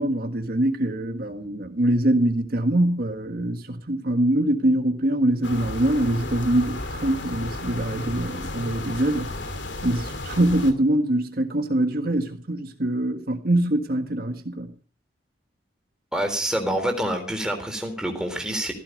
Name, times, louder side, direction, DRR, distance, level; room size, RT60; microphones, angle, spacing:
voice 1, 0.0-9.3 9.8-14.7, right 1 dB, 55° right, 1.6 m, -23 dB
sound 1, 5.4-10.7, left 2 dB, 85° left, 2.6 m, -33 dB
voice 2, 16.1-18.7, right 1 dB, 5° right, 3.8 m, -27 dB
16.0 x 15.5 x 5.2 m
head